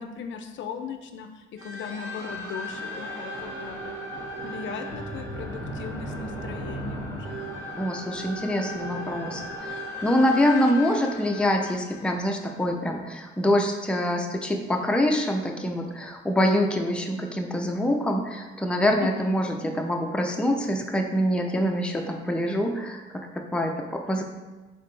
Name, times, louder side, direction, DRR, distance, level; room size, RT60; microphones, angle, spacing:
voice 1, 0.0-4.0 4.4-7.5 19.0-19.4, left 7 dB, 70° left, 7 dB, 0.4 m, -38 dB
sound 1, 1.6-12.8, equal, 70° right, 1.4 m, -36 dB
voice 2, 7.8-9.4 10.0-24.2, left 1 dB, 5° left, 2 dB, 0.5 m, -25 dB
4.1 x 3.9 x 3.2 m, 1.2 s
cardioid pair, 90°, 20 cm